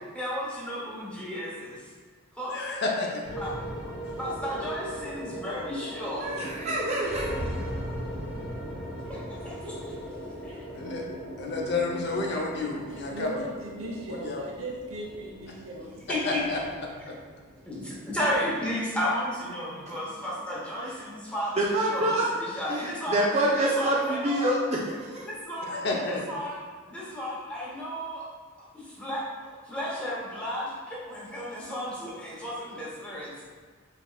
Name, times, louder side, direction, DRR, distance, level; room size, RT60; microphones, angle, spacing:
voice 1, 0.1-1.9 2.3-2.6 3.4-3.5 3.9-6.3 9.0-10.1 10.4-10.6 16.1-16.4 17.7-23.2 23.6-24.5 25.2-25.8 26.0-26.5 26.9-28.2 28.8-29.2 29.6-33.3, equal, 5° left, -7 dB, 0.9 m, -33 dB
voice 2, 2.5-3.2 4.0-4.1 10.7-11.0 11.4-13.4 14.1-14.4 16.2-16.6 17.1-17.2 25.7-26.2, left 3 dB, 50° left, -1 dB, 0.6 m, -30 dB
sound 1, 3.2-21.6, equal, 50° right, 1.1 m, -39 dB
voice 3, 6.2-7.3 21.6-22.3 22.7-25.3, right 1 dB, 30° right, -3 dB, 0.4 m, -26 dB
voice 4, 12.9-15.9, right 1 dB, 80° right, -2 dB, 0.8 m, -37 dB
4.2 x 3.5 x 2.3 m, 1.5 s
head